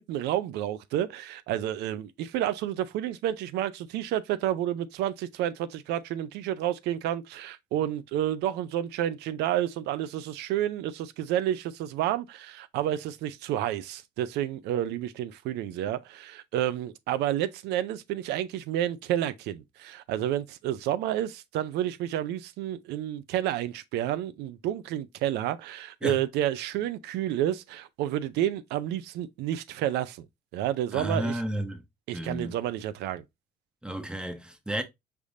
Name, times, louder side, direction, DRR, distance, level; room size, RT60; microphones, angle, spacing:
voice 1, 0.0-30.3 30.5-31.4 32.1-33.2, right 12 dB, 85° right, 0.5 m, -30 dB
voice 2, 30.9-31.8 32.1-32.5 33.8-34.8, right 1 dB, 5° right, 0.8 m, -32 dB
5.0 x 3.4 x 2.6 m
cardioid pair, 110°, 17 cm